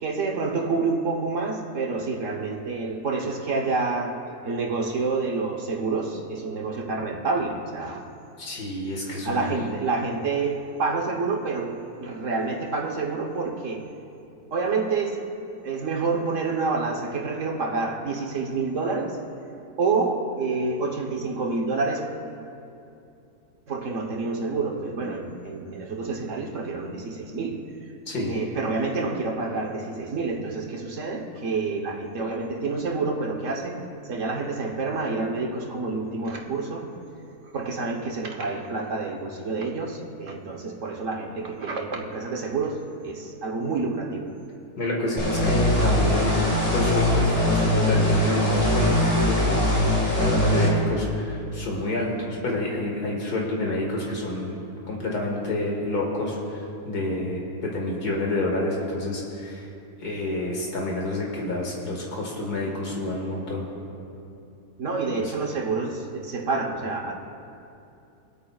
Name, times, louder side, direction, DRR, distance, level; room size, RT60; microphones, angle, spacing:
voice 1, 0.0-8.1 9.2-13.9 14.5-15.3 15.6-19.2 19.8-22.1 23.7-27.9 28.2-36.9 37.5-44.4 64.8-67.1, right 3 dB, 55° right, 1 dB, 1.4 m, -28 dB
voice 2, 8.4-9.5 28.1-28.4 44.8-46.5 46.7-49.6 50.1-54.5 54.9-59.7 60.0-63.7 65.2-65.3, left 1 dB, 85° left, -2 dB, 2.4 m, -28 dB
sound 1, 45.2-50.7, left 1 dB, 50° left, 2.5 m, -21 dB
23.5 x 8.8 x 2.4 m, 2.7 s
omnidirectional pair, 1.6 m